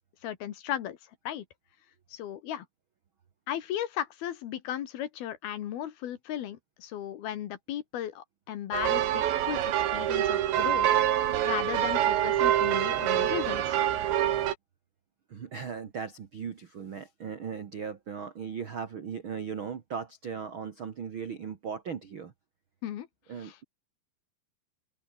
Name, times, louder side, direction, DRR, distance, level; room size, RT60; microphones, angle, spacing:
voice 1, 0.2-1.0 1.2-1.4 2.1-2.6 3.5-10.9 11.4-13.8 22.8-23.1 23.4-23.6, left 11 dB, 65° left, 3.3 m, -36 dB
sound 1, 8.7-14.5, right 12 dB, 85° right, 4.2 m, -26 dB
voice 2, 15.3-22.3 23.3-23.6, right 6 dB, 60° right, 1.3 m, -38 dB
open air
omnidirectional pair, 5.0 m